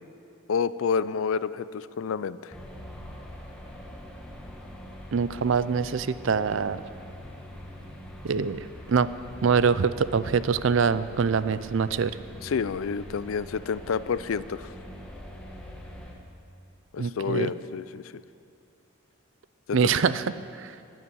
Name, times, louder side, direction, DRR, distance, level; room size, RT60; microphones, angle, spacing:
voice 1, 0.5-2.5 12.4-14.7 16.9-18.1 19.7-20.0, left 6 dB, 70° left, 16 dB, 0.4 m, -29 dB
sound 1, 2.5-16.1, equal, 5° left, 1.3 m, -43 dB
voice 2, 5.1-6.8 8.2-8.6 8.9-9.1 9.4-12.1 17.0-17.5 19.7-20.2, right 6 dB, 60° right, 15 dB, 0.4 m, -24 dB
12.5 x 9.5 x 8.4 m, 2.6 s
head